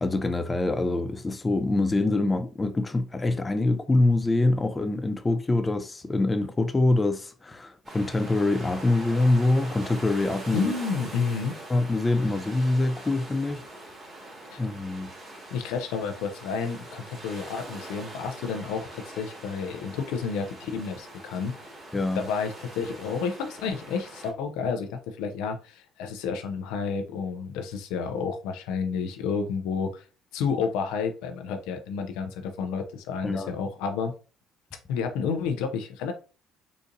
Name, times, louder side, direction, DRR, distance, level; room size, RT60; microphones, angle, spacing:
voice 1, 0.0-10.7 11.7-13.6 14.6-15.1 21.9-22.2 33.2-33.5, left 2 dB, 25° left, 0.4 m, -25 dB
sound 1, 7.8-24.3, right 1 dB, 35° right, 1.8 m, -43 dB
voice 2, 10.5-11.5 14.5-14.6 15.5-21.6 22.1-30.0 30.3-34.1 34.9-36.1, left 5 dB, 80° left, 0.5 m, -30 dB
4.0 x 2.5 x 2.6 m
supercardioid pair, 65°, 0 cm